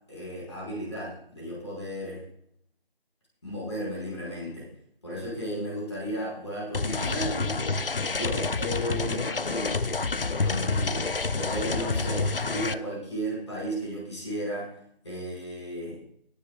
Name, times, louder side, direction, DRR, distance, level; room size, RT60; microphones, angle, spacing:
voice 1, 0.1-2.2 3.4-4.7 5.0-7.6 8.1-9.8 10.4-11.0 11.3-14.7 15.0-16.0, equal, 30° left, -5 dB, 5.1 m, -34 dB
sound 1, 6.7-12.7, left 3 dB, 65° left, 0.7 m, -28 dB
21.5 x 10.0 x 2.4 m, 0.66 s
figure-of-eight pair, 170°, 30 cm